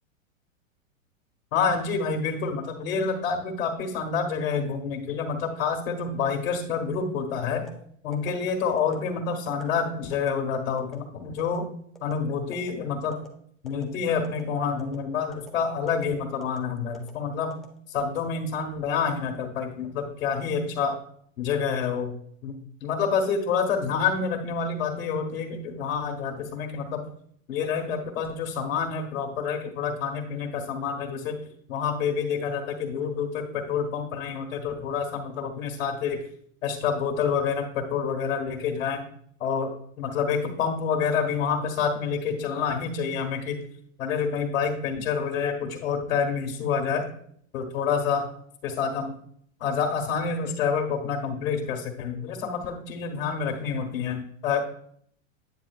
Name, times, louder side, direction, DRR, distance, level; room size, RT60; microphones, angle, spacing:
voice 1, 1.5-7.7 8.0-11.7 12.0-13.2 13.6-17.6 17.9-21.0 21.4-22.1 22.4-27.1 27.5-31.4 31.7-36.2 36.6-39.0 39.4-43.6 44.0-47.1 47.5-48.3 48.6-49.1 49.6-54.6, left 6 dB, 75° left, 3 dB, 1.6 m, -28 dB
sound 1, 7.5-7.8 8.1-8.3 8.8-9.0 9.5-9.6 10.1-10.3 10.8-11.0 11.4-11.6 12.0-12.2 12.5-12.7 13.1-13.3 13.7-13.9 14.2-14.4 14.8-15.0 15.3-15.5 15.9-16.1 16.4-16.6 16.9-17.1 17.5-18.2 18.6-18.9, left 2 dB, ahead, 0.5 m, -47 dB
9.5 x 7.4 x 2.4 m, 0.64 s
hypercardioid pair, 140°, 41 cm